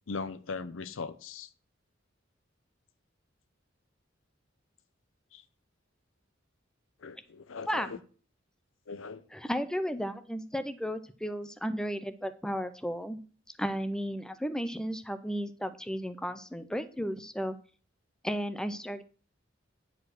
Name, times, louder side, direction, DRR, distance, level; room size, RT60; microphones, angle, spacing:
voice 1, 0.1-1.5 5.3-5.4 7.0-8.0 8.9-9.2, left 4 dB, 85° left, 0.7 m, -39 dB
voice 2, 9.3-13.2 13.6-17.6 18.2-19.0, equal, 5° left, 0.5 m, -34 dB
9.8 x 4.7 x 6.2 m
head